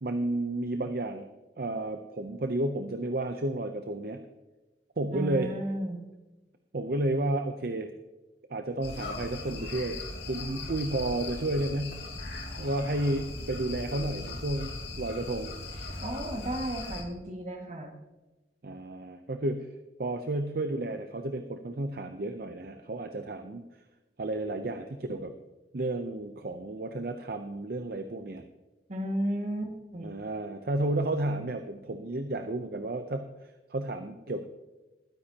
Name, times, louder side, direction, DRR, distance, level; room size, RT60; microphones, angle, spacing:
voice 1, 0.0-1.3 1.6-4.2 5.0-5.5 6.7-7.9 8.5-12.0 12.6-15.5 18.6-19.7 20.0-23.6 24.2-25.3 25.7-28.5 30.0-34.5, right 2 dB, 55° right, 7 dB, 0.7 m, -32 dB
voice 2, 5.1-6.0 16.0-17.9 28.9-30.1, right 1 dB, 40° right, 2 dB, 1.9 m, -33 dB
sound 1, 8.8-17.0, left 2 dB, 80° left, 2.5 m, -39 dB
21.0 x 9.7 x 2.9 m, 1.1 s
head